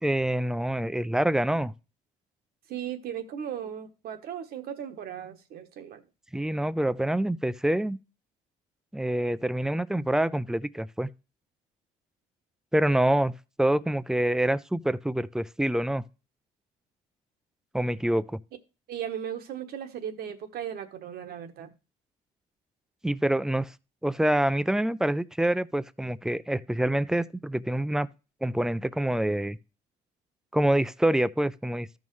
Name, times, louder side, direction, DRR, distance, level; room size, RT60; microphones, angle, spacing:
voice 1, 0.0-1.7 6.3-8.0 8.9-11.1 12.7-13.3 13.6-16.0 17.7-18.4 23.0-23.7 24.0-28.1 28.4-29.6 30.5-32.0, right 1 dB, 5° right, 0.4 m, -26 dB
voice 2, 2.7-6.0 18.9-21.7, right 9 dB, 65° right, 1.2 m, -37 dB
14.0 x 5.4 x 3.2 m
cardioid pair, 110°, 17 cm